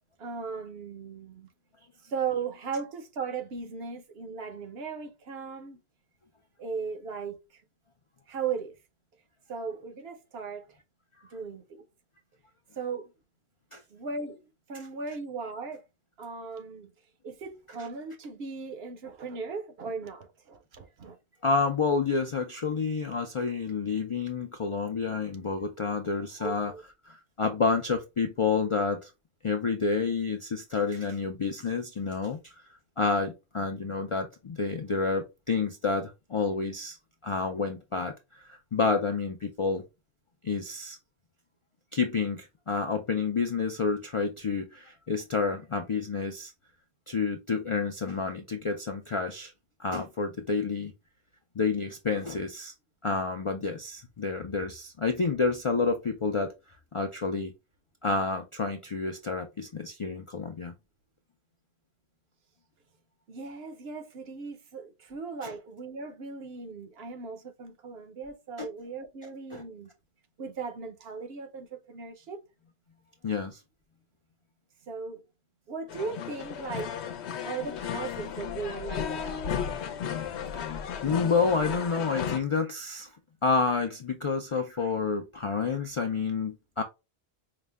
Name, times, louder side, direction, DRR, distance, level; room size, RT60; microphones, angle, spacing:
voice 1, 0.2-1.5 2.0-5.8 6.6-7.4 8.3-8.7 9.5-10.7 11.3-11.8 12.8-13.1 13.9-14.4 14.7-15.8 16.2-16.9 17.2-21.2 26.4-26.8 63.3-69.9 70.4-72.4 74.9-75.2 75.7-76.9 77.4-79.4, right 5 dB, 65° right, 0.9 m, -37 dB
voice 2, 21.4-26.7 27.1-29.1 29.4-32.6 33.0-37.0 37.2-39.8 40.4-41.0 41.9-46.5 47.1-49.5 49.8-50.9 51.6-52.7 53.0-56.5 56.9-57.5 58.0-60.7 65.4-65.5 68.6-68.7 69.5-69.6 73.2-73.6 80.5-83.1 83.4-86.8, left 4 dB, 50° left, 0.3 m, -29 dB
sound 1, 75.9-82.4, left 8 dB, 80° left, 0.9 m, -34 dB
5.0 x 2.1 x 3.3 m
omnidirectional pair, 1.1 m